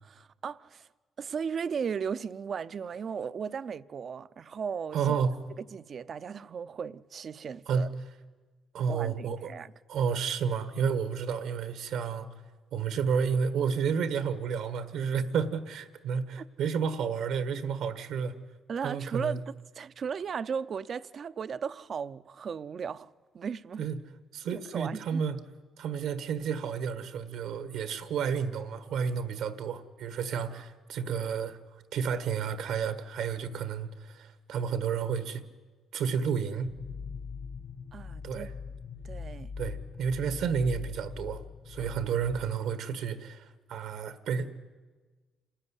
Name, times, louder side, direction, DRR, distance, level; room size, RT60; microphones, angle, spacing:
voice 1, 0.0-0.9 1.2-5.1 5.6-7.9 8.9-9.7 16.4-16.5 18.7-23.1 23.3-23.9 24.5-25.2 37.9-38.5 39.0-39.5 41.8-42.0, right 6 dB, 50° right, 0.6 m, -36 dB
voice 2, 4.9-5.4 7.7-7.9 8.7-9.5 9.9-12.3 12.7-18.3 18.8-19.4 23.8-23.9 24.3-25.4 25.8-31.6 31.9-35.4 35.9-36.7 38.2-38.5 39.6-41.4 41.7-44.5, right 6 dB, 85° right, 1.5 m, -31 dB
sound 1, 36.7-42.5, left 5 dB, 45° left, 1.1 m, -41 dB
27.5 x 13.0 x 9.9 m
cardioid pair, 90°, 0 cm